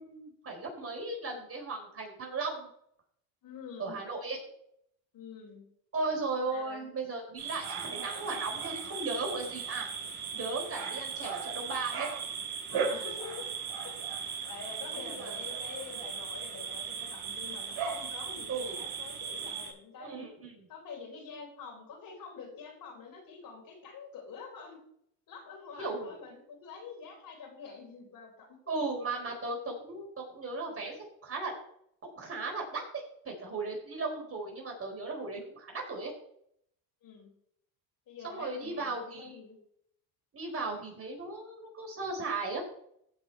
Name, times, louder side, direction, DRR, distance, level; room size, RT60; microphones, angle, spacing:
voice 1, 0.0-2.7 3.8-4.4 5.9-9.9 10.3-12.1 15.0-15.4 18.5-18.8 20.0-20.6 25.8-26.1 28.7-31.5 32.0-36.1 38.2-39.4 40.3-42.6, right 3 dB, 30° right, 1 dB, 4.1 m, -36 dB
voice 2, 3.4-4.0 5.1-5.7 6.5-6.9 10.7-10.9 12.7-13.5 13.8-20.3 20.7-24.8 25.3-28.6 37.0-37.3 38.1-39.6, left 5 dB, 50° left, 1 dB, 3.7 m, -47 dB
sound 1, 7.4-19.7, right 6 dB, 55° right, 4.2 m, -37 dB
15.0 x 5.3 x 4.6 m, 0.71 s
supercardioid pair, 90°, 44 cm